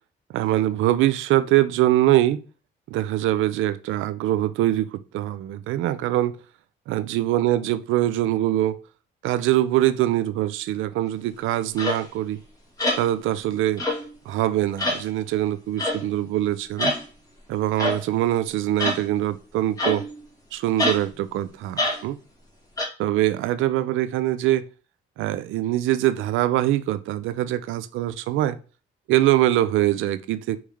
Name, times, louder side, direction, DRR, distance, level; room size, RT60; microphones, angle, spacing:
voice 1, 0.3-2.4 2.9-6.4 6.9-8.8 9.2-12.4 13.0-13.8 14.3-16.9 17.5-20.0 20.5-22.2 23.0-24.6 25.2-28.6 29.1-30.6, right 14 dB, 90° right, 0.5 m, -23 dB
sound 1, 11.8-12.0 12.8-13.1 13.8-14.1 14.8-15.0 15.8-16.0 16.8-17.0 17.8-18.0 18.8-19.0 19.8-20.2 20.8-21.0 21.8-22.0 22.8-22.9, left 1 dB, 20° left, 2.0 m, -25 dB
4.6 x 3.2 x 3.5 m
cardioid pair, 90°, 20 cm